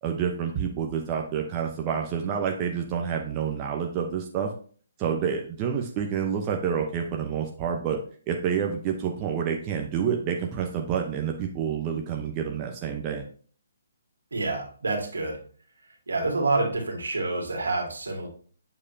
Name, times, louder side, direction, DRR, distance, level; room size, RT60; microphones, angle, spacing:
voice 1, 0.0-4.5 5.0-8.0 8.3-13.2, right 7 dB, 25° right, 2 dB, 0.8 m, -28 dB
voice 2, 14.3-15.4 16.1-18.3, right 2 dB, 75° right, 1 dB, 2.3 m, -27 dB
7.5 x 6.4 x 2.7 m, 0.44 s
figure-of-eight pair, 135°, 0 cm